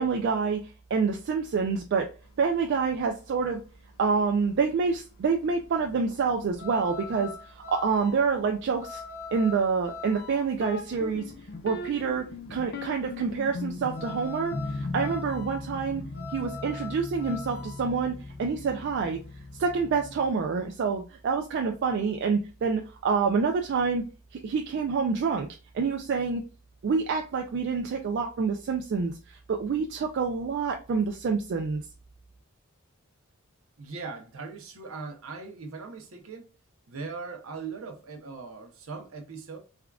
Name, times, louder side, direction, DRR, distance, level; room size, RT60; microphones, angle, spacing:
voice 1, 0.0-2.1 2.4-3.6 4.0-9.0 9.3-11.3 11.6-12.2 12.5-16.0 16.3-19.2 19.6-24.0 24.3-25.5 25.7-26.4 26.8-31.8, right 5 dB, 55° right, 0.3 m, -27 dB
sound 1, 2.3-20.3, left 5 dB, 85° left, 1.3 m, -44 dB
sound 2, 10.6-20.3, left 3 dB, 50° left, 0.4 m, -38 dB
voice 2, 33.8-36.4 36.9-39.6, right 4 dB, 70° right, 0.7 m, -39 dB
3.5 x 2.3 x 2.2 m
head